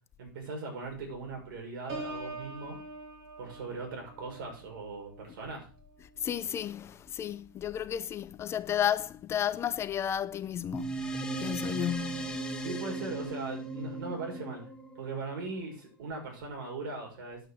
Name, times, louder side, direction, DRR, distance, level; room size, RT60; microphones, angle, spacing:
voice 1, 0.2-2.8 3.4-5.7 12.6-14.6 14.9-17.4, right 3 dB, 65° right, 6.3 m, -39 dB
Piano, 1.9-7.5 8.0-8.3, right 2 dB, 45° right, 3.6 m, -46 dB
voice 2, 6.0-12.4, left 10 dB, 25° left, 0.5 m, -33 dB
sound 1, 10.7-15.5, right 2 dB, 5° left, 1.5 m, -37 dB
9.0 x 8.8 x 5.0 m
supercardioid pair, 135°, 12 cm